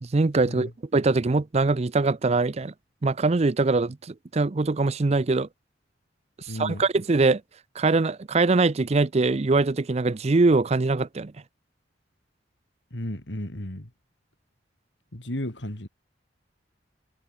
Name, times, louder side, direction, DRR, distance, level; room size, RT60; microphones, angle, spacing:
voice 1, 0.0-2.7 3.0-5.5 6.6-7.4 7.8-11.3, right 3 dB, 35° right, 0.5 m, -22 dB
voice 2, 6.5-6.8 12.9-13.9 15.1-15.9, left 1 dB, 65° left, 3.1 m, -33 dB
head